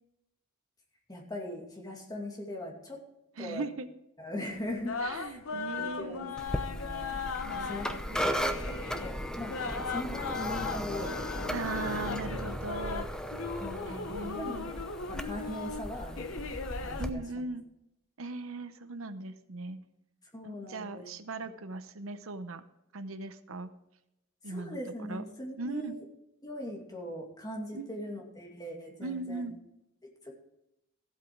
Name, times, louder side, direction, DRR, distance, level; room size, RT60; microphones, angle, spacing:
voice 1, 1.1-3.0 3.4-3.7 4.2-7.2 7.5-7.9 8.3-9.6 9.9-11.3 13.6-14.8 15.1-16.4 16.8-17.2 20.3-21.1 24.5-26.0 26.4-29.5 30.0-30.3, left 1 dB, 20° left, 0 dB, 2.4 m, -40 dB
voice 2, 3.4-3.9 5.0-6.3 7.4-8.2 11.5-13.1 13.9-14.8 17.0-17.7 18.2-19.8 20.4-22.6 22.9-23.7 24.4-25.2 25.6-25.9 27.7-28.0 29.0-29.6, right 3 dB, 80° right, 11 dB, 0.8 m, -39 dB
sound 1, 4.5-17.1, left 5 dB, 85° left, 0.9 m, -38 dB
sound 2, 6.4-17.1, equal, 5° left, 0.7 m, -36 dB
15.0 x 8.2 x 4.7 m, 0.88 s
head